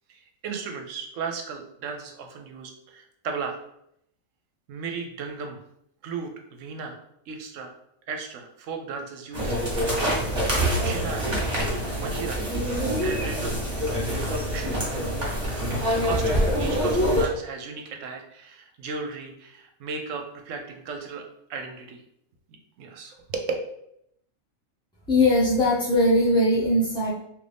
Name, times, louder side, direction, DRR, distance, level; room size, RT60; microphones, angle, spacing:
voice 1, 0.1-3.6 4.7-5.6 6.0-6.3 6.6-7.0 7.3-7.7 8.1-9.5 9.9-10.3 10.8-11.3 11.9-12.4 13.0-13.5 14.3-14.7 16.0-22.0 22.8-23.5, right 5 dB, 70° right, 3 dB, 0.9 m, -35 dB
sound 1, 9.3-17.3, equal, 25° right, 1.0 m, -25 dB
voice 2, 25.1-27.1, left 1 dB, 5° left, -9 dB, 0.3 m, -20 dB
3.0 x 2.6 x 3.3 m, 0.74 s
omnidirectional pair, 1.4 m